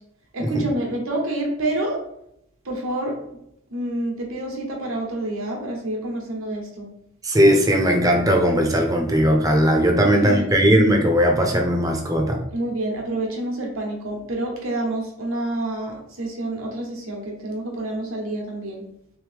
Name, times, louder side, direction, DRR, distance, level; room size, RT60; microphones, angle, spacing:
voice 1, 0.3-2.0 2.6-3.4 3.7-6.9 9.9-10.5 12.5-18.8, right 1 dB, 85° right, 1 dB, 1.1 m, -28 dB
voice 2, 7.2-12.4, equal, 15° right, 2 dB, 0.5 m, -18 dB
3.6 x 3.1 x 3.4 m, 0.77 s
head